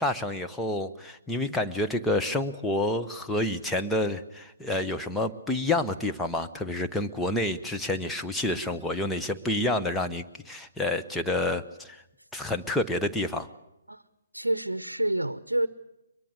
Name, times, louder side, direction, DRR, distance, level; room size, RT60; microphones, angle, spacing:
voice 1, 0.0-12.0 12.3-13.5, left 1 dB, 5° left, 4 dB, 0.9 m, -29 dB
voice 2, 14.3-15.7, right 1 dB, 80° right, 14 dB, 0.7 m, -28 dB
23.5 x 22.0 x 6.6 m, 0.89 s
figure-of-eight pair, 135°, 0 cm